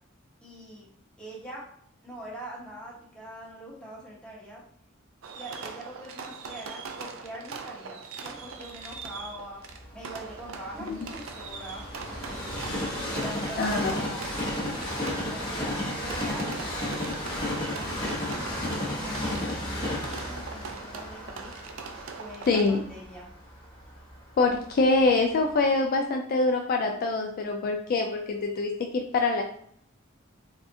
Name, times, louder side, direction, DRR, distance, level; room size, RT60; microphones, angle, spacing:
voice 1, 0.4-0.8 1.2-1.6 2.0-4.6 5.3-9.6 9.9-11.8 12.2-12.4 12.9-14.9 15.3-17.2 17.7-20.0 20.4-21.8 22.1-23.3, right 1 dB, 5° left, -6 dB, 1.2 m, -43 dB
Fireworks, 5.2-23.0, right 5 dB, 85° right, 0.4 m, -42 dB
Train, 8.9-24.9 25.4-25.5, left 1 dB, 25° left, 0.9 m, -33 dB
voice 2, 13.6-13.9 22.5-22.8 24.4-29.4, left 3 dB, 50° left, 3 dB, 0.3 m, -24 dB
3.5 x 2.4 x 2.7 m, 0.65 s
head